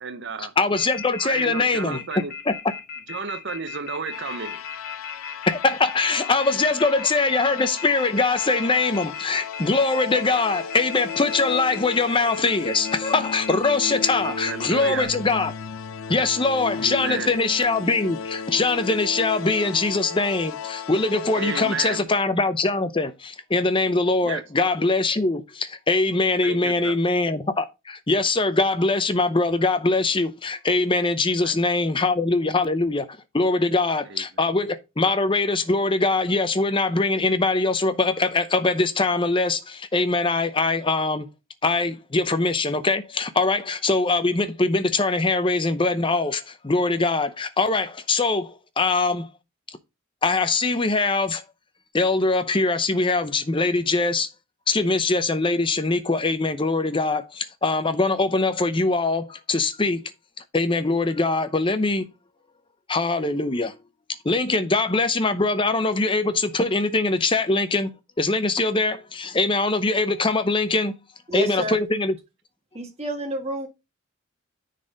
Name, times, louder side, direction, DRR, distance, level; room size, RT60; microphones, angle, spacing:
voice 1, 0.0-0.6 1.2-2.3 3.1-4.6 14.2-15.1 16.8-17.3 21.3-22.1 24.2-24.4 26.4-27.0 31.4-31.6 32.0-32.1 34.0-34.4, right 5 dB, 55° right, 0.7 m, -32 dB
voice 2, 0.6-2.0 2.5-2.6 5.5-15.5 16.1-41.3 41.6-49.3 50.2-51.4 51.9-54.3 54.7-60.0 60.5-62.1 62.9-63.8 64.2-67.9 68.2-71.0 71.3-72.2, left 3 dB, 25° left, 0.7 m, -22 dB
Telephone, 0.7-15.0, left 5 dB, 45° left, 1.6 m, -36 dB
sound 1, 4.1-22.0, left 6 dB, 70° left, 0.5 m, -35 dB
voice 3, 71.3-71.8 72.7-73.7, right 1 dB, 30° right, 1.8 m, -29 dB
9.7 x 4.1 x 3.9 m
head